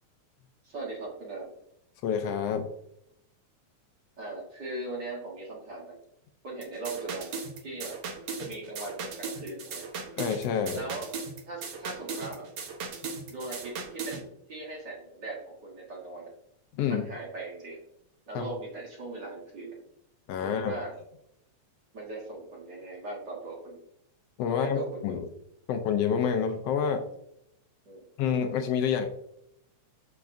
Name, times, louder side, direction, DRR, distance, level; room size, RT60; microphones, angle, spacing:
voice 1, 0.6-1.5 4.2-6.0 6.4-8.0 8.4-9.8 10.7-11.1 11.5-12.5 13.3-14.2 14.5-16.3 16.9-17.8 18.3-19.8 20.4-20.9 21.9-23.8 24.6-25.2 27.9-28.0, right 2 dB, 45° right, -3 dB, 1.7 m, -39 dB
voice 2, 2.0-2.7 10.2-10.8 16.8-17.1 18.3-18.5 20.3-20.8 24.4-25.2 25.7-27.0 28.2-29.1, left 7 dB, 85° left, 5 dB, 1.4 m, -28 dB
sound 1, 6.6-14.2, right 5 dB, 65° right, 2.0 m, -38 dB
7.0 x 6.0 x 2.6 m, 0.76 s
omnidirectional pair, 3.5 m